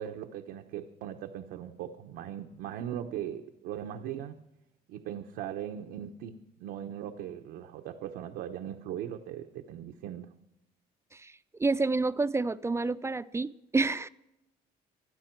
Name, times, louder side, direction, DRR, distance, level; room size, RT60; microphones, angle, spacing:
voice 1, 0.0-4.4 4.9-10.3, right 10 dB, 90° right, 4 dB, 0.9 m, -39 dB
voice 2, 11.6-14.1, right 3 dB, 15° right, 14 dB, 0.4 m, -28 dB
25.5 x 9.6 x 4.5 m, 0.92 s
cardioid pair, 110°, 17 cm